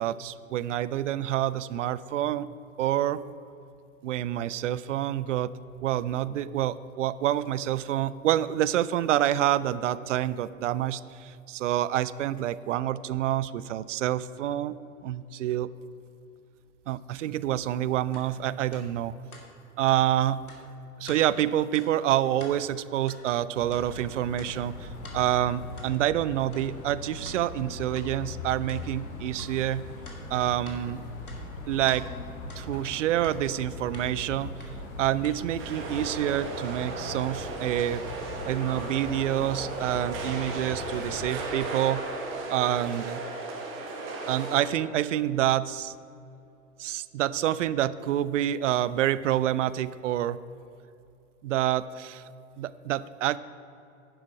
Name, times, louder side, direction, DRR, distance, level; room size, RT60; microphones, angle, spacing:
voice 1, 0.0-2.5 2.8-3.2 4.0-5.5 5.8-14.8 15.0-15.7 16.9-19.1 19.8-20.4 21.0-29.8 30.3-31.0 31.7-32.1 32.6-34.5 35.0-38.0 38.4-42.0 42.5-43.2 44.3-45.9 46.8-50.4 51.4-52.3 52.6-53.4, right 12 dB, 60° right, 17 dB, 0.5 m, -27 dB
sound 1, 18.1-18.3 18.7-18.9 19.3-19.5 19.9-20.0 20.5-20.6 21.1-21.2 21.7-21.9 22.3-22.6 23.1-23.2 23.7-23.9 24.4-24.5 25.0-25.2 25.8-25.9 26.5-26.6 27.2-27.4 27.9-28.1 28.7-28.8 29.4-29.5 30.0-30.8 31.2-32.0 32.5-32.6 33.2-33.4 33.9-34.1 34.6-34.7 35.2-35.4, left 2 dB, 80° left, 1.8 m, -47 dB
sound 2, 23.6-41.3, left 2 dB, 50° left, 2.1 m, -40 dB
sound 3, 35.6-44.6, right 3 dB, 30° right, 1.6 m, -35 dB
10.5 x 7.2 x 4.8 m, 2.6 s
figure-of-eight pair, 105°, 42 cm